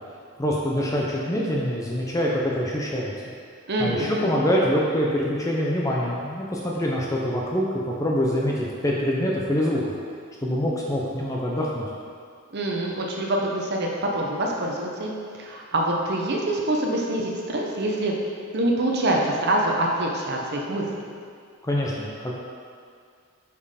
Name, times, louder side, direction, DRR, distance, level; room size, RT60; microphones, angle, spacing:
voice 1, 0.4-3.1 3.8-9.8 10.4-11.8 21.6-22.3, equal, 15° left, -3 dB, 0.6 m, -25 dB
voice 2, 3.7-4.3 12.5-18.1 18.5-20.8, right 1 dB, 50° right, -1 dB, 0.8 m, -25 dB
5.5 x 4.4 x 4.9 m, 2.2 s
head